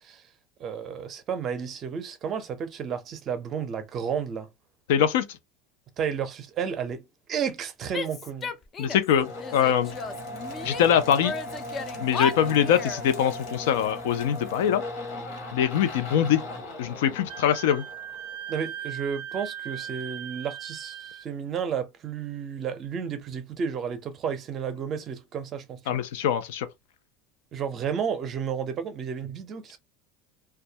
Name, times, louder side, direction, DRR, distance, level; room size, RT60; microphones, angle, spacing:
voice 1, 0.6-4.5 6.0-8.5 18.5-26.0 27.5-29.8, right 7 dB, 30° right, 0.5 m, -32 dB
voice 2, 4.9-5.3 8.8-9.9 10.6-11.3 12.0-14.8 15.5-16.4 16.8-17.8 25.9-26.7, left 9 dB, 90° left, 0.4 m, -23 dB
Female speech woman speaking / Yell, 7.9-9.1 9.4-10.9 11.2-13.0, left 4 dB, 25° left, 0.3 m, -34 dB
sound 1, 9.1-18.7, left 1 dB, 70° left, 0.9 m, -38 dB
Wind instrument woodwind instrument, 17.3-21.3, right 9 dB, 90° right, 0.3 m, -38 dB
2.2 x 2.1 x 2.6 m
cardioid pair, 155°, 0 cm